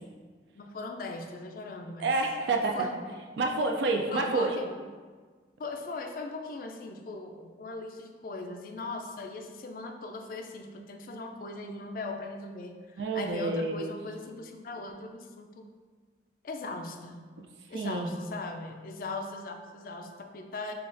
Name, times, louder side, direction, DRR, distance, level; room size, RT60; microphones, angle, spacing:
voice 1, 0.5-2.1 2.5-2.9 4.1-4.8 5.6-15.7 16.4-17.2 17.7-20.7, left 2 dB, 50° left, 4 dB, 0.3 m, -39 dB
voice 2, 2.0-2.9 3.4-4.6 13.0-14.0 17.7-18.1, right 3 dB, 75° right, 2 dB, 0.4 m, -28 dB
6.8 x 2.4 x 2.5 m, 1.5 s
head